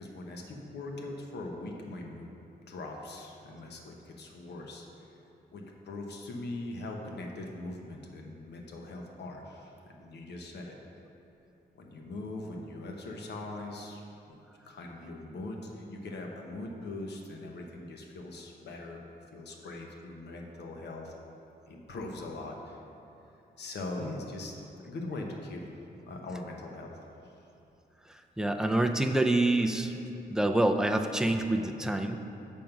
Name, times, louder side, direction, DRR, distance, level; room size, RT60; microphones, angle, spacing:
voice 1, 0.0-2.3 2.7-4.9 5.5-10.8 11.7-14.4 14.7-19.1 19.3-21.1 21.7-22.8 23.6-27.0 27.2-27.3, left 2 dB, 85° left, 1 dB, 0.9 m, -41 dB
voice 2, 28.1-29.9 30.3-32.2, right 1 dB, 5° right, 5 dB, 0.3 m, -27 dB
7.4 x 5.2 x 5.9 m, 2.8 s
wide cardioid pair, 175°, 17 cm